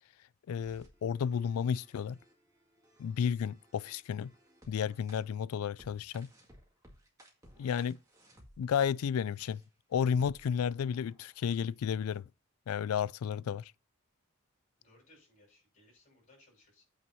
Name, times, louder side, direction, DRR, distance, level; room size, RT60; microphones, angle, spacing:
voice 1, 0.5-2.2 3.0-4.3 4.7-6.3 7.6-8.0 8.6-9.6 9.9-12.3 12.7-13.7, left 7 dB, 85° left, 0.3 m, -32 dB
sound 1, 0.6-5.2 5.8-8.8 9.4-9.7 10.2-11.7, equal, 15° right, 1.9 m, -61 dB
voice 2, 14.8-16.8, left 1 dB, 35° left, 5.9 m, -63 dB
8.7 x 4.6 x 5.6 m
head